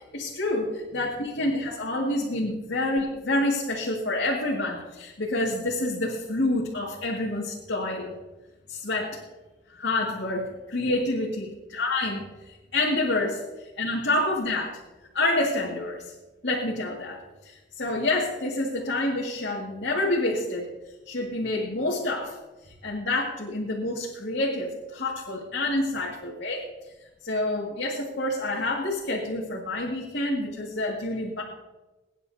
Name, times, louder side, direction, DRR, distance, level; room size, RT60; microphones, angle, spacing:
voice 1, 0.1-8.1 8.7-9.2 9.7-14.8 15.1-16.1 16.4-20.7 21.1-22.4 22.6-26.6 27.2-31.4, left 2 dB, 70° left, -4 dB, 2.2 m, -28 dB
24.0 x 10.0 x 2.8 m, 1.1 s
head